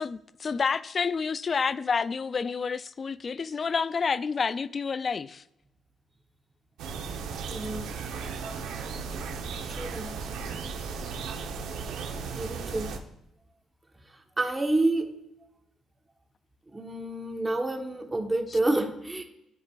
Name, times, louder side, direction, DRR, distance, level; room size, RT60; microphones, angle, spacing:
voice 1, 0.0-5.4, left 5 dB, 40° left, 0.3 m, -29 dB
sound 1, 6.8-13.0, right 5 dB, 90° right, 0.9 m, -36 dB
voice 2, 7.5-7.9 9.8-10.1 12.3-12.9 14.4-15.2 16.7-19.2, right 2 dB, 15° right, 1.2 m, -28 dB
13.0 x 4.9 x 2.4 m
cardioid pair, 90°, 0 cm